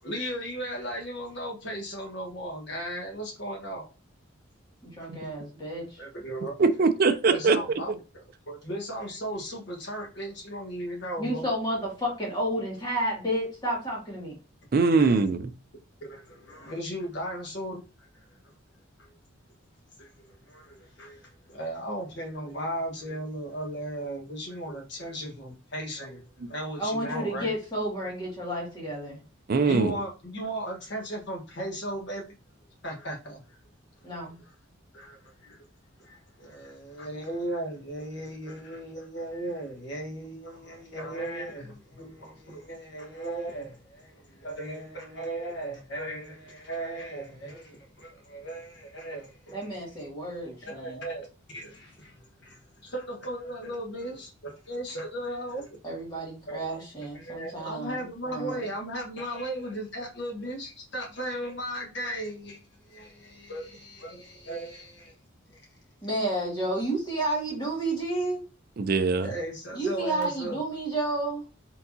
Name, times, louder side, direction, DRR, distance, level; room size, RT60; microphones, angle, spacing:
voice 1, 0.0-3.9 6.0-6.6 7.3-11.4 15.0-15.2 16.0-18.3 19.0-19.1 20.0-27.5 29.7-32.3 32.8-33.6 34.4-34.5 34.9-35.6 36.0-49.7 50.6-51.3 51.5-55.7 56.5-62.6 62.9-65.1 65.5-65.6 69.2-70.6, right 1 dB, 55° left, 1.3 m, -36 dB
voice 2, 4.8-6.0 11.2-14.4 26.8-29.2 34.0-34.4 49.5-51.0 55.8-58.6 66.0-68.4 69.7-71.4, right 1 dB, 20° left, 2.1 m, -31 dB
voice 3, 6.6-7.6 14.7-15.5 26.4-26.5 29.5-30.0 68.8-69.3, right 4 dB, 45° right, 0.4 m, -22 dB
4.6 x 3.7 x 2.7 m
head